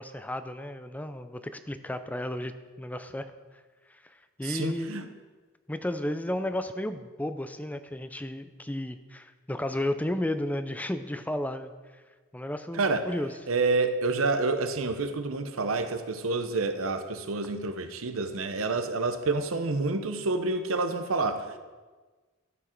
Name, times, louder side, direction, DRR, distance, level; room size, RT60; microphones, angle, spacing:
voice 1, 0.0-3.3 4.0-5.2 5.7-11.7 12.3-13.3, left 1 dB, 5° left, 10 dB, 0.4 m, -33 dB
voice 2, 4.4-5.0 12.7-13.1 13.5-21.4, right 3 dB, 75° right, 8 dB, 0.8 m, -28 dB
12.5 x 6.2 x 4.5 m, 1.3 s
head